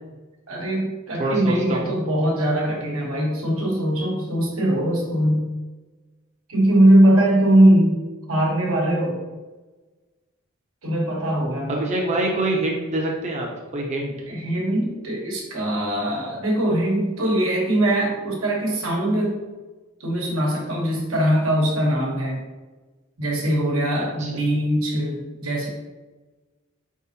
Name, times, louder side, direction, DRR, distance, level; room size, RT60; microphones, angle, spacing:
voice 1, 0.5-5.5 6.5-9.2 10.8-11.8 14.3-19.4 20.0-22.4 23.2-25.7, right 1 dB, 90° right, -2 dB, 1.2 m, -21 dB
voice 2, 1.2-1.9 11.7-13.5 13.7-14.1 24.2-24.3, right 1 dB, 35° right, -1 dB, 0.6 m, -25 dB
4.3 x 3.5 x 2.8 m, 1.2 s
head